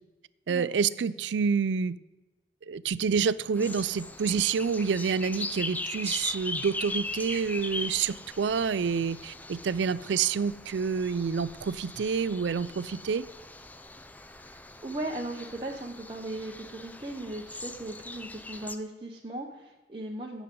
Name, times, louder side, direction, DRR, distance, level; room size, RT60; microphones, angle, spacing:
voice 1, 0.5-2.0 2.7-13.3, right 6 dB, 75° right, 18 dB, 0.4 m, -28 dB
sound 1, 3.5-18.8, left 2 dB, 10° left, 0.4 m, -40 dB
voice 2, 14.4-20.4, right 1 dB, 30° right, -2 dB, 0.9 m, -38 dB
17.0 x 7.1 x 3.8 m, 1.1 s
head